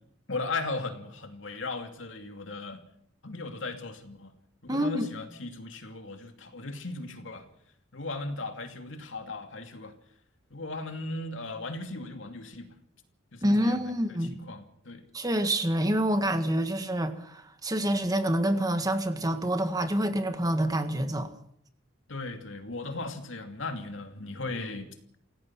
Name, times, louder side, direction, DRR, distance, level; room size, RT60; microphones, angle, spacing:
voice 1, 0.3-2.8 3.2-4.3 4.6-7.4 7.9-9.9 10.5-12.7 13.3-13.8 14.3-15.0 22.1-25.2, left 3 dB, 70° left, 2.7 m, -37 dB
voice 2, 4.7-5.1 13.4-14.4 15.1-21.3, right 1 dB, 20° right, 1.6 m, -27 dB
27.0 x 17.0 x 5.9 m
head